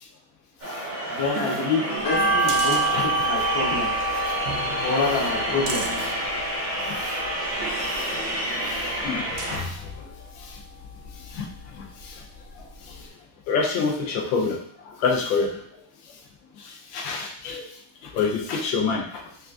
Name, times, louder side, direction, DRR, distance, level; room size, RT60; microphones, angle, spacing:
sound 1, 0.6-9.6, right 1 dB, 40° right, 0.7 m, -29 dB
voice 1, 1.1-3.9 4.8-5.9, left 3 dB, 65° left, -4 dB, 1.5 m, -27 dB
sound 2, 1.4-3.5 3.9-4.1 4.4-7.0 7.6-9.8 10.3-10.4, right 4 dB, 75° right, 1.2 m, -37 dB
sound 3, 2.0-8.3 8.7-9.9 10.2-11.6 12.0-12.1 12.6-12.7 12.9-13.0, right 2 dB, 35° left, 0.9 m, -28 dB
voice 2, 6.8-7.2 7.8-8.2 8.6-10.6 11.1-12.3 12.6-13.1 13.5-15.6 16.0-16.2 16.6-19.2, left 5 dB, 80° left, 2 dB, 1.4 m, -29 dB
5.8 x 2.5 x 2.4 m, 0.63 s
omnidirectional pair, 2.1 m